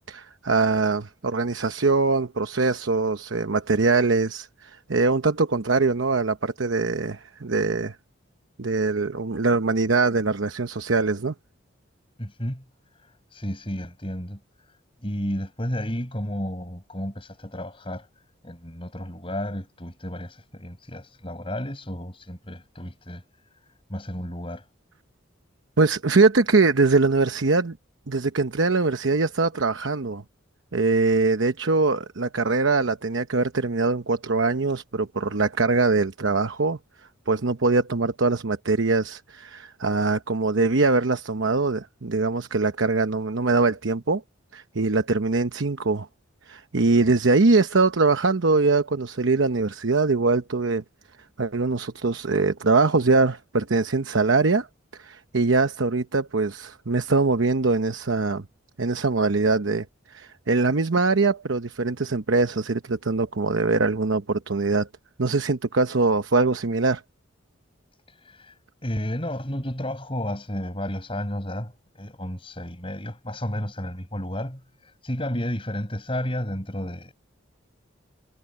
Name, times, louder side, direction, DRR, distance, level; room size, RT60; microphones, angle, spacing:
voice 1, 0.1-8.0 8.6-11.3 25.8-27.8 28.1-30.2 30.7-36.8 37.3-44.2 44.5-46.1 46.5-50.8 51.4-54.7 55.0-58.4 58.8-64.9 65.2-67.0, right 3 dB, 75° right, 0.9 m, -22 dB
voice 2, 12.2-12.6 13.3-14.4 15.0-18.1 18.4-23.2 23.9-24.6 68.2-68.5 68.8-77.1, equal, 25° left, 5.9 m, -32 dB
head